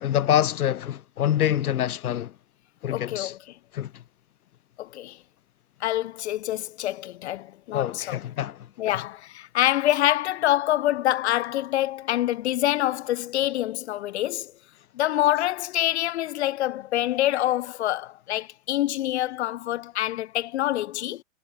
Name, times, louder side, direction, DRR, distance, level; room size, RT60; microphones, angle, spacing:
voice 1, 0.0-2.3 2.8-3.3 3.7-3.9 7.7-8.7, left 11 dB, 90° left, 2.2 m, -25 dB
voice 2, 2.9-3.4 4.8-5.2 5.8-8.2 8.8-14.5 14.9-21.2, left 14 dB, 50° left, 0.6 m, -26 dB
supercardioid pair, 170°, 43 cm